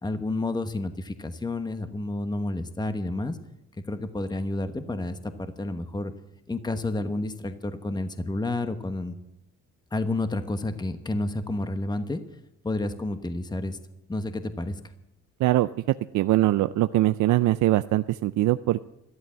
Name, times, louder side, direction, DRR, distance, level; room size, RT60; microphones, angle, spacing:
voice 1, 0.0-3.4 3.9-6.1 6.5-9.2 9.9-12.2 12.6-13.8 14.1-14.8, left 2 dB, 15° left, 9 dB, 1.1 m, -30 dB
voice 2, 16.1-18.8, right 15 dB, 75° right, 12 dB, 0.5 m, -22 dB
12.5 x 12.5 x 7.4 m, 0.87 s
cardioid pair, 90°, 30 cm